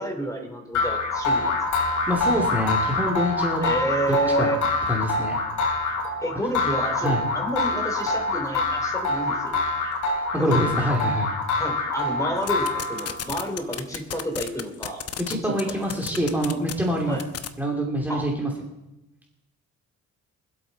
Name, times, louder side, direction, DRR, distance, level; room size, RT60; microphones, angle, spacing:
voice 1, 0.0-1.6 3.6-4.6 6.2-9.6 10.4-10.7 11.5-16.0 17.1-17.2 18.1-18.3, right 1 dB, 10° left, 4 dB, 3.0 m, -30 dB
Jaws Harp- Short phrase, 0.7-13.3, left 3 dB, 75° left, 3.6 m, -25 dB
voice 2, 2.1-3.7 4.4-4.6 4.9-5.4 7.0-7.2 10.3-11.3 15.2-17.2 17.6-18.5, equal, 5° right, -1 dB, 2.5 m, -25 dB
sound 1, 12.4-15.3 15.6-16.7 17.2-17.5, left 9 dB, 55° left, 1.0 m, -32 dB
24.5 x 8.1 x 4.1 m, 0.93 s
cardioid pair, 90°, 30 cm